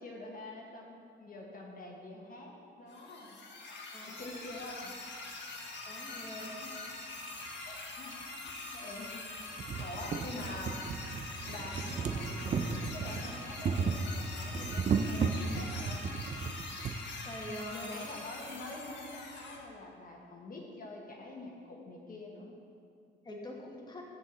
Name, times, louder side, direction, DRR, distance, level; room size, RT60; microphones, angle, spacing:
voice 1, 0.0-3.4 4.0-4.9 6.2-6.3 6.6-6.7 7.6-8.2 8.4-10.8 11.5-16.0 17.7-22.5, left 2 dB, 45° left, -1 dB, 1.3 m, -46 dB
sound 1, 2.9-19.6, left 3 dB, 65° left, 1.4 m, -44 dB
voice 2, 3.9-4.4 5.3-5.4 5.8-6.6 7.5-7.8 17.2-17.9 23.2-24.0, left 1 dB, 20° left, -2 dB, 1.5 m, -45 dB
sound 2, 7.4-7.5 8.5-8.6 9.0-9.1 9.4-17.0 17.9-18.0 18.2-18.3, right 5 dB, 35° right, 0.5 m, -35 dB
7.4 x 4.4 x 7.0 m, 2.3 s
cardioid pair, 90°, 20 cm